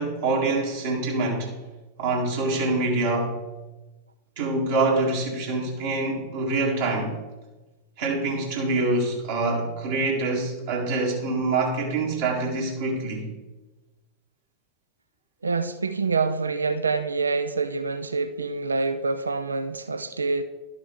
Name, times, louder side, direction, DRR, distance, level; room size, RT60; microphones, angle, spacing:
voice 1, 0.0-1.6 2.0-3.4 4.4-7.2 8.0-13.3, right 2 dB, 55° right, 1.8 m, -25 dB
voice 2, 15.4-20.4, right 4 dB, 75° right, 0.5 m, -26 dB
12.0 x 6.0 x 3.8 m
figure-of-eight pair, 90°, 0 cm